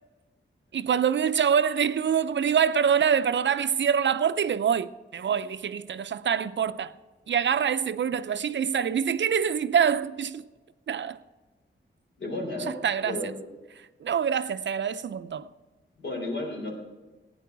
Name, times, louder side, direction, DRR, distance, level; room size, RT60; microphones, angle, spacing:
voice 1, 0.7-7.0 7.3-10.5 10.9-11.2 12.7-13.3 13.8-15.5, right 7 dB, 65° right, 0.5 m, -25 dB
voice 2, 12.2-12.8 13.0-13.3 16.0-16.7, left 1 dB, 65° left, 3.6 m, -32 dB
16.0 x 9.4 x 4.7 m
wide cardioid pair, 145°, 20 cm